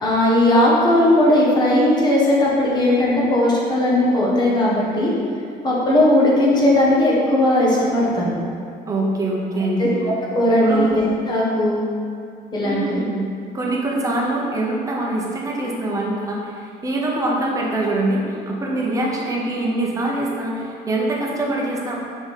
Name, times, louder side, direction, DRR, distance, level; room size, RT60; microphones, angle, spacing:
voice 1, 0.0-5.1 5.6-8.3 9.8-9.9 10.3-11.8 12.5-13.0, left 1 dB, 25° left, -5 dB, 1.3 m, -17 dB
voice 2, 8.9-9.9 10.6-10.9 12.6-13.3 13.5-22.0, right 2 dB, 20° right, -2 dB, 0.9 m, -24 dB
5.4 x 5.0 x 4.2 m, 2.4 s
cardioid pair, 160°, 17 cm